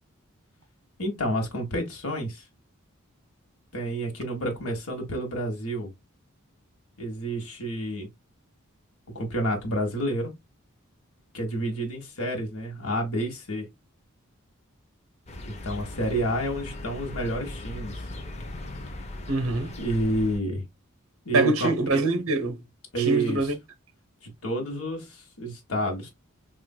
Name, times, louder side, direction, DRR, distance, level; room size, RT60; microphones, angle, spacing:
voice 1, 1.0-2.5 3.7-5.9 7.0-8.1 9.1-10.3 11.3-13.7 15.5-18.1 19.8-20.6 21.2-21.7 22.9-23.5 24.2-26.1, right 1 dB, 90° left, 1.1 m, -29 dB
sound 1, 15.3-20.4, left 1 dB, 30° left, 0.5 m, -38 dB
voice 2, 19.3-19.7 21.3-22.6 23.0-23.5, right 2 dB, 75° right, 0.7 m, -24 dB
4.4 x 2.5 x 2.2 m
head